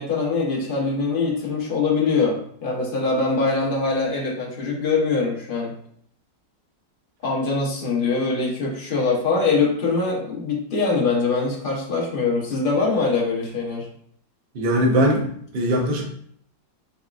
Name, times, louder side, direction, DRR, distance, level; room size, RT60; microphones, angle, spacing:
voice 1, 0.0-5.7 7.2-13.9, left 4 dB, 40° left, -3 dB, 0.8 m, -23 dB
voice 2, 14.5-15.3 15.5-16.1, equal, 55° right, -1 dB, 0.6 m, -20 dB
4.1 x 3.5 x 2.3 m, 0.63 s
omnidirectional pair, 2.0 m